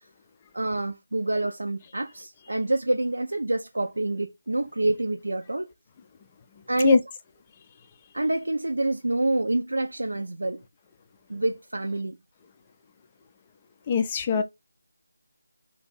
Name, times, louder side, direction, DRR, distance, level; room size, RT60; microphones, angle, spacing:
voice 1, 0.5-5.7 6.7-7.0 8.1-10.6 11.3-12.2, right 2 dB, 70° right, 0.5 m, -27 dB
voice 2, 13.9-14.4, left 6 dB, 20° left, 0.4 m, -22 dB
2.6 x 2.3 x 3.9 m
figure-of-eight pair, 160°, 0 cm